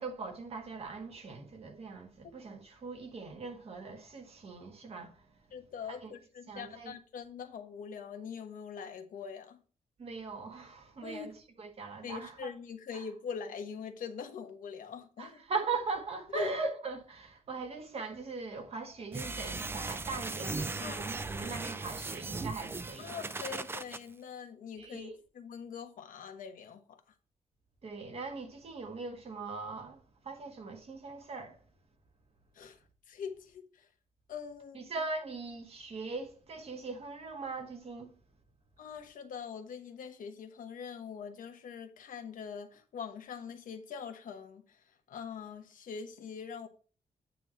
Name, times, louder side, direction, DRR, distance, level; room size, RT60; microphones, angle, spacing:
voice 1, 0.0-5.2 5.9-6.1 6.5-6.9 10.0-12.5 12.9-13.0 15.2-23.1 24.8-25.2 27.8-31.6 34.7-38.1, right 4 dB, 50° right, 1.6 m, -40 dB
voice 2, 5.5-9.6 11.0-11.3 12.0-15.4 16.3-16.5 20.8-21.0 23.0-27.0 32.5-32.8 33.1-33.9 34.3-34.9 38.8-46.7, left 6 dB, 90° left, 1.1 m, -43 dB
sound 1, 19.1-24.0, right 3 dB, 15° right, 0.4 m, -38 dB
9.0 x 3.0 x 6.3 m
wide cardioid pair, 150°, 14 cm